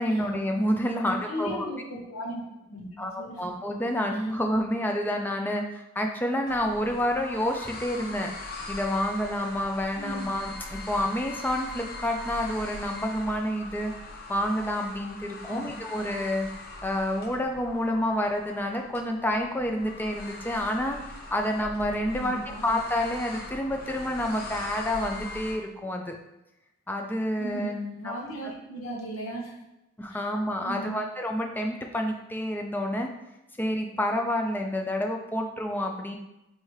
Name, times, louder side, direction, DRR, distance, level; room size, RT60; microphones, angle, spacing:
voice 1, 0.0-1.6 3.0-8.3 8.7-13.9 14.3-16.5 16.8-21.0 21.3-26.2 26.9-27.7 28.0-28.1 30.0-33.1 33.6-36.2, left 1 dB, 10° left, 3 dB, 0.3 m, -29 dB
voice 2, 0.9-2.4 2.7-3.5 4.1-4.2 9.9-10.3 15.5-16.0 22.2-22.7 27.4-29.6 30.1-30.3 30.6-31.1, right 1 dB, 85° left, 0 dB, 0.9 m, -37 dB
sound 1, 6.5-25.5, left 2 dB, 45° left, 0.6 m, -41 dB
4.8 x 2.7 x 3.1 m, 0.92 s
head